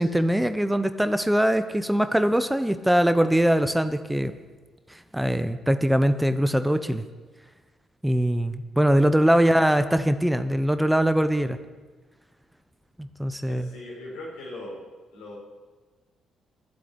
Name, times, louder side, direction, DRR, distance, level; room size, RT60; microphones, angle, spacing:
voice 1, 0.0-4.4 4.9-7.0 8.0-11.6 13.0-13.7, equal, 5° right, 10 dB, 0.8 m, -22 dB
voice 2, 13.5-14.8 15.1-15.4, left 1 dB, 85° left, -2 dB, 4.4 m, -40 dB
11.5 x 7.7 x 8.4 m, 1.3 s
supercardioid pair, 60°, 0 cm